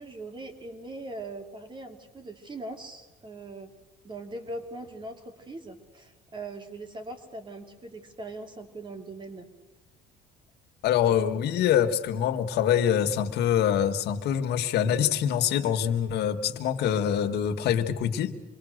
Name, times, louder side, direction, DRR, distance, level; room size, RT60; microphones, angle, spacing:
voice 1, 0.0-3.7 4.0-9.5, right 2 dB, 30° right, 5 dB, 2.8 m, -40 dB
voice 2, 10.8-18.4, left 9 dB, 80° left, 8 dB, 1.7 m, -25 dB
26.5 x 22.0 x 6.6 m, 1.0 s
cardioid pair, 110°, 17 cm